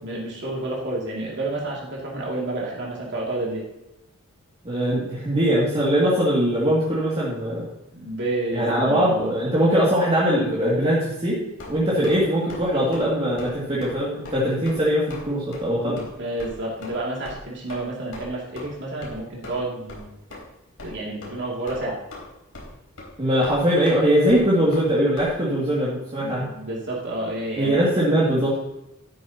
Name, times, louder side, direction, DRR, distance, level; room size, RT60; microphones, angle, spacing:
voice 1, 0.0-3.6 7.9-9.3 11.9-12.1 15.8-20.1 20.8-22.0 26.2-28.6, right 2 dB, 55° right, -4 dB, 2.6 m, -30 dB
voice 2, 4.6-7.7 8.5-11.4 11.7-16.0 23.2-26.5 27.6-28.6, equal, 30° right, -7 dB, 2.3 m, -21 dB
sound 1, 11.6-12.2 12.5-12.6 12.9-13.1 13.4-13.5 13.8-13.9 14.2-14.4 14.6-14.8 15.1-15.2 15.5-15.6 16.0-16.1 16.4-16.5 16.8-17.0 17.2-17.4 17.7-17.8 18.1-18.2 18.5-18.6 19.0-19.2 19.4-19.6 19.9-20.0 20.3-20.4 20.8-20.9 21.2-21.4 21.7-22.2 22.5-22.7 23.0-23.1 23.4-23.6 23.8-24.0 24.3-24.4 24.7-24.8 25.2-25.3, left 2 dB, 75° left, 4.0 m, -39 dB
12.5 x 11.0 x 2.9 m, 0.90 s
head